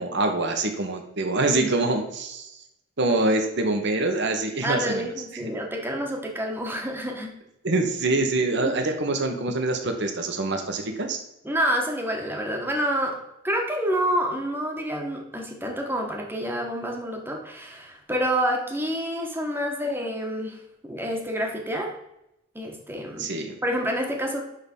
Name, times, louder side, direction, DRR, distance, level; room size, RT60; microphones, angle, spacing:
voice 1, 0.0-2.6 3.0-5.0 5.4-5.5 7.6-11.2 23.2-23.6, right 2 dB, 60° right, 5 dB, 1.3 m, -25 dB
voice 2, 4.6-7.3 8.6-8.8 11.4-13.2 13.4-21.9 22.5-23.3 23.6-24.4, equal, 10° right, 1 dB, 1.6 m, -28 dB
11.0 x 3.9 x 5.5 m, 0.84 s
head